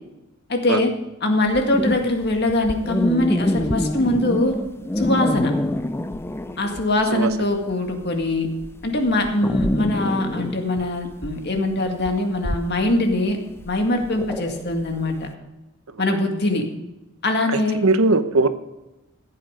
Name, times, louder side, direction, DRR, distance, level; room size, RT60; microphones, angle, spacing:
voice 1, 0.5-0.9 1.2-4.6 5.0-5.5 6.6-8.5 8.8-13.4 13.7-15.3 16.0-16.7 17.2-17.8, left 2 dB, 50° left, 4 dB, 1.9 m, -22 dB
sound 1, 1.5-7.0 7.3-15.2, left 1 dB, 10° left, 0.5 m, -26 dB
voice 2, 17.5-18.5, right 3 dB, 85° right, 11 dB, 0.9 m, -20 dB
14.0 x 8.7 x 5.1 m, 1.0 s
head